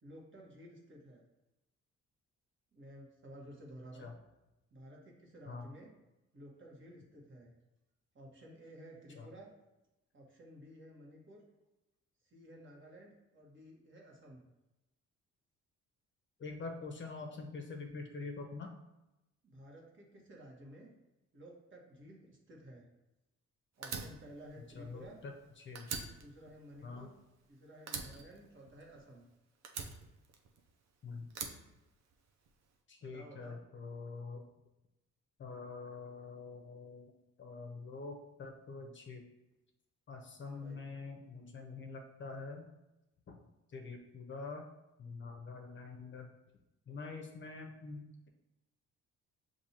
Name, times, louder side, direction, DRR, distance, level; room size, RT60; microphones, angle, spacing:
voice 1, 0.0-1.2 2.7-4.1 4.7-5.9 6.3-7.5 8.1-9.5 10.1-11.4 12.2-14.4 19.4-20.9 21.3-22.9 23.8-25.2 26.2-27.1 27.5-29.2 33.0-33.6 40.4-40.8, right 1 dB, 40° right, -2 dB, 1.3 m, -54 dB
voice 2, 16.4-18.7 24.7-25.9 26.8-27.1 31.0-31.3 32.9-34.4 35.4-39.2 40.1-42.7 43.3-43.4 43.7-44.7 45.0-46.3 46.9-48.3, left 4 dB, 40° left, 3 dB, 0.6 m, -45 dB
Fire, 23.8-25.4 25.7-27.5 27.9-29.2 29.6-30.8 31.3-32.5, right 5 dB, 60° right, 0.7 m, -44 dB
6.8 x 2.6 x 2.9 m, 0.97 s
cardioid pair, 90°, 30 cm